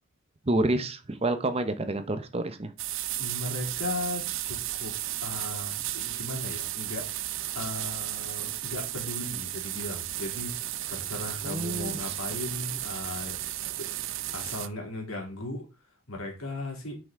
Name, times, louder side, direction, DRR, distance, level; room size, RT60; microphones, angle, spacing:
voice 1, 0.4-2.7 11.4-12.1, right 2 dB, 30° right, 9 dB, 0.8 m, -29 dB
sound 1, 2.8-14.7, right 14 dB, 65° right, 0.6 m, -34 dB
voice 2, 3.2-4.9 5.2-10.5 10.9-13.4 13.8-13.9 14.3-15.6 16.1-17.0, left 2 dB, 80° left, 1 dB, 3.0 m, -37 dB
7.8 x 5.7 x 3.7 m, 0.28 s
head